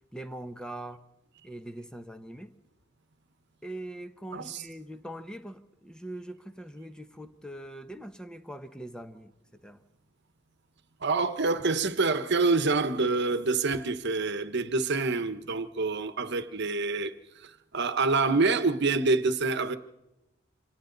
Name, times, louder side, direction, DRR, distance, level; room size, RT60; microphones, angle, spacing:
voice 1, 0.1-1.0 1.4-2.5 3.6-9.8, right 1 dB, 5° left, 0.9 m, -42 dB
voice 2, 11.0-17.1 17.4-19.8, right 3 dB, 60° right, 1.1 m, -26 dB
28.0 x 25.5 x 4.0 m
head